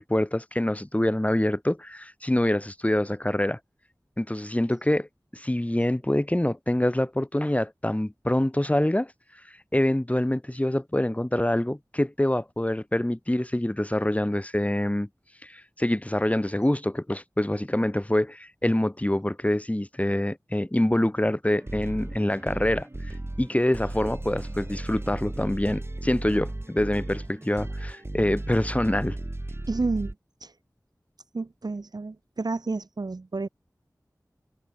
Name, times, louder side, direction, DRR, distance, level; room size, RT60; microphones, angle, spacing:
voice 1, 0.0-3.6 4.2-5.1 5.3-15.1 15.4-23.1 23.4-29.2, left 1 dB, 20° left, 5.1 m, -25 dB
sound 1, 21.6-30.1, right 2 dB, 40° right, 4.6 m, -35 dB
voice 2, 29.7-30.1 30.4-30.5 31.3-33.5, right 3 dB, 85° right, 3.8 m, -30 dB
wide cardioid pair, 55°, 7 cm